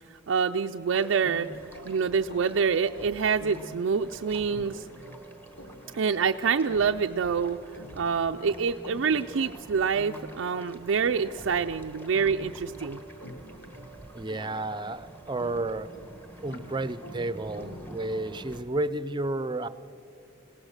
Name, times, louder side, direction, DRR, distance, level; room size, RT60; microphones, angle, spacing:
voice 1, 0.3-1.5 1.9-4.9 5.9-7.6 8.0-13.0, right 6 dB, 80° right, 5 dB, 0.4 m, -26 dB
sound 1, 0.9-18.6, equal, 10° left, 1.3 m, -49 dB
sound 2, 1.2-18.6, equal, 85° left, 3.1 m, -47 dB
voice 2, 14.1-15.9 16.4-19.7, right 2 dB, 25° right, 13 dB, 0.6 m, -31 dB
26.5 x 18.0 x 6.6 m, 2.5 s
head